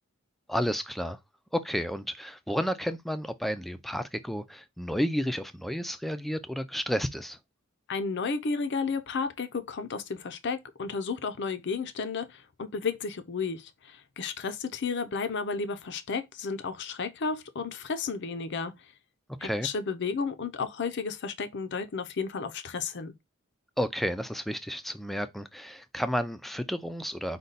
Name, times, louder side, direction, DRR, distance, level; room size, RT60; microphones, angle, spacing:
voice 1, 0.5-1.2 1.5-7.4 19.4-19.7 23.8-27.4, equal, ahead, 0.3 m, -31 dB
voice 2, 7.9-18.7 19.4-23.1, left 4 dB, 55° left, 0.5 m, -32 dB
5.2 x 2.2 x 4.0 m
head